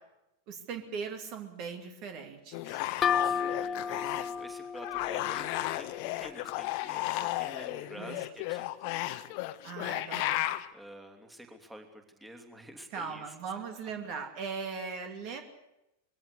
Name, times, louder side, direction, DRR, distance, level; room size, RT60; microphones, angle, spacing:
voice 1, 0.5-2.8 8.0-8.3 9.6-10.5 12.9-15.4, right 5 dB, 40° right, 5 dB, 2.7 m, -39 dB
sound 1, 2.5-4.4 4.8-10.7, left 16 dB, 45° left, 1.2 m, -34 dB
voice 2, 2.7-9.4 10.7-13.3 15.3-15.4, right 1 dB, 5° right, 4 dB, 3.0 m, -50 dB
sound 2, 3.0-6.6, left 7 dB, 25° left, 0.8 m, -33 dB
22.0 x 16.5 x 8.1 m, 0.88 s
figure-of-eight pair, 90°, 0 cm